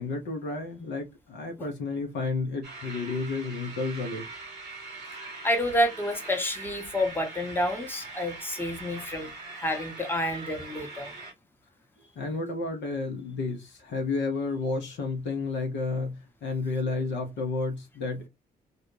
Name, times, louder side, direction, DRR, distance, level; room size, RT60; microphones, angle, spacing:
voice 1, 0.0-4.3 12.2-18.3, left 3 dB, 60° left, 0.8 m, -31 dB
sound 1, 2.6-11.3, right 3 dB, 85° right, 0.8 m, -42 dB
voice 2, 5.4-11.1, left 1 dB, 10° left, 1.0 m, -29 dB
2.3 x 2.2 x 3.0 m
figure-of-eight pair, 40°, 21 cm